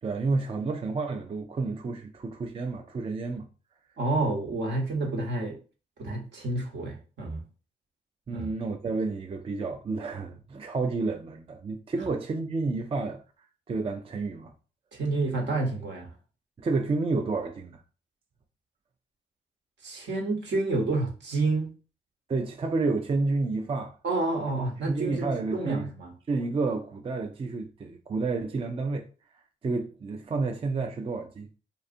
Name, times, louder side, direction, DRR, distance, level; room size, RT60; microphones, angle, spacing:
voice 1, 0.0-3.5 8.3-13.2 13.7-14.5 16.6-17.8 22.3-24.0 24.9-25.9 26.3-29.1 29.6-31.5, right 3 dB, 30° right, 0.4 m, -30 dB
voice 2, 4.0-5.6 6.0-7.4 8.3-8.5 14.9-16.1 19.8-21.7 24.0-26.1, right 2 dB, 65° right, 0.9 m, -29 dB
2.6 x 2.4 x 2.5 m
supercardioid pair, 55°, 20 cm